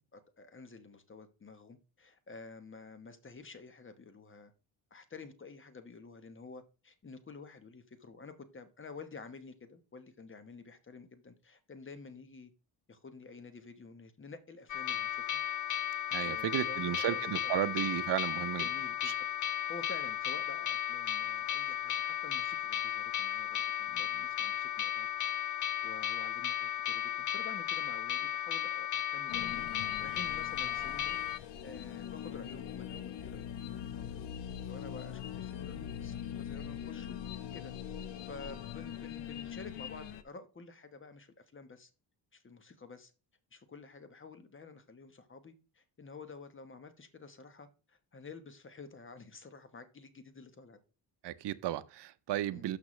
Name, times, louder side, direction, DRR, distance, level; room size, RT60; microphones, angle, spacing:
voice 1, 0.0-4.5 4.9-12.5 12.9-15.4 15.9-17.7 18.6-25.1 25.4-29.7 30.0-33.4 33.8-37.2 37.5-37.7 38.2-41.9 42.3-43.1 43.5-50.8 52.5-52.7, left 4 dB, 30° left, 1.2 m, -50 dB
sound 1, 14.7-31.4, left 11 dB, 45° left, 0.5 m, -35 dB
voice 2, 16.1-18.7 19.0-19.1 51.2-52.8, right 13 dB, 75° right, 0.7 m, -34 dB
sound 2, 29.3-40.2, left 9 dB, 80° left, 0.9 m, -42 dB
12.5 x 5.8 x 3.2 m
cardioid pair, 110°, 42 cm